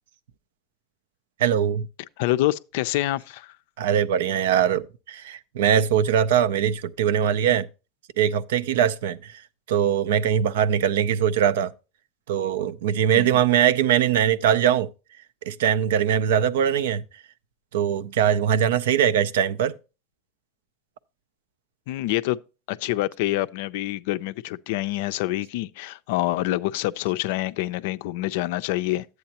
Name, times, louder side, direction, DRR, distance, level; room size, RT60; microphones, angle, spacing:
voice 1, 1.4-1.9 3.8-7.7 8.2-9.4 9.7-11.7 12.3-14.9 15.4-17.0 17.7-19.8, right 9 dB, 85° right, 0.4 m, -21 dB
voice 2, 2.2-3.5 13.1-13.4 21.9-22.4 22.7-29.1, left 16 dB, 75° left, 0.4 m, -26 dB
10.5 x 7.9 x 2.8 m
supercardioid pair, 105°, 0 cm